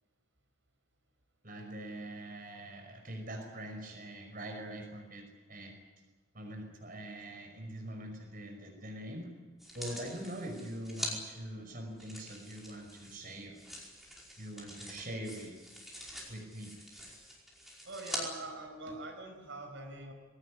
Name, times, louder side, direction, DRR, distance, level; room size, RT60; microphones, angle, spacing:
voice 1, 1.4-5.7 6.3-9.3 9.7-13.6 14.4-15.5 16.3-16.7, right 1 dB, 45° right, 2 dB, 5.4 m, -43 dB
sound 1, 9.6-11.1 12.0-18.2 18.9-19.0, equal, ahead, 5.1 m, -45 dB
voice 2, 17.8-20.1, right 2 dB, 70° right, 3 dB, 5.4 m, -43 dB
22.0 x 17.5 x 10.0 m, 1.3 s
head